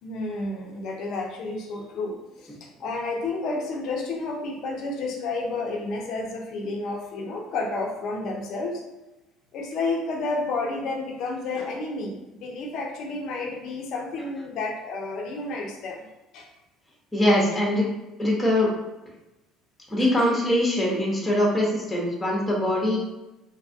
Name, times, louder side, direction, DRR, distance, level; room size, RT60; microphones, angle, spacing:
voice 1, 0.0-8.8 9.5-16.1 16.3-16.5 20.0-20.3, left 3 dB, 60° left, 0 dB, 0.5 m, -31 dB
voice 2, 17.1-17.9 18.2-18.7 19.9-23.0, left 1 dB, 10° left, -3 dB, 0.8 m, -22 dB
2.6 x 2.3 x 2.6 m, 0.99 s
supercardioid pair, 105°, 0 cm